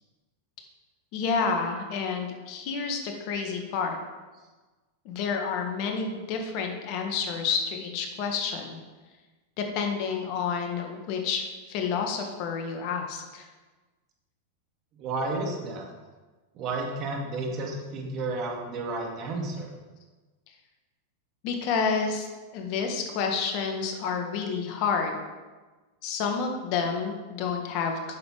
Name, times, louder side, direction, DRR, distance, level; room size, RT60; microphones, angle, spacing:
voice 1, 1.1-4.0 5.1-8.8 9.6-13.5 21.4-22.3 22.5-25.2 26.0-28.2, left 5 dB, 50° left, 3 dB, 1.7 m, -29 dB
voice 2, 15.0-15.9 16.6-19.7, right 2 dB, 40° right, 0 dB, 2.3 m, -32 dB
9.3 x 6.8 x 5.0 m, 1.3 s
hypercardioid pair, 100°, 0 cm